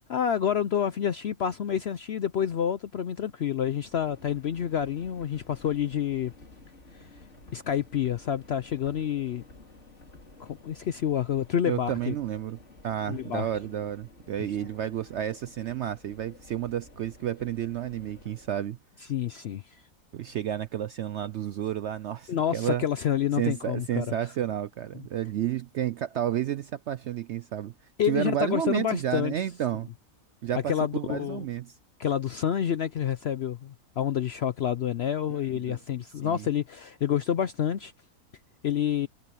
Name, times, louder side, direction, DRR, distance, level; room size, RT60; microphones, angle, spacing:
voice 1, 0.1-6.3 7.5-9.4 10.4-12.1 13.1-13.5 19.1-19.6 22.3-24.1 28.0-29.3 30.7-31.4 32.0-37.9 38.6-39.1, left 9 dB, 65° left, 0.6 m, -28 dB
Subway metro underground, 3.7-18.6, left 3 dB, 45° left, 3.6 m, -52 dB
voice 2, 11.6-12.6 12.8-18.8 20.1-22.8 23.4-27.7 28.1-29.9 30.4-31.8 35.7-35.8 36.2-36.5, right 11 dB, 70° right, 0.7 m, -31 dB
omnidirectional pair, 1.6 m